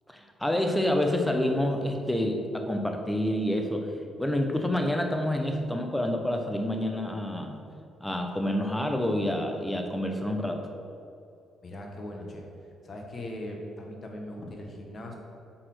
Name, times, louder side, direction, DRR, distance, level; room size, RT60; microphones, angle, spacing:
voice 1, 0.1-3.9 4.2-7.6 8.0-10.6, left 1 dB, 5° left, 3 dB, 1.0 m, -28 dB
voice 2, 11.6-12.5 12.8-15.1, left 1 dB, 40° left, 1 dB, 1.5 m, -39 dB
7.8 x 4.1 x 6.3 m, 2.7 s
cardioid pair, 90°, 0 cm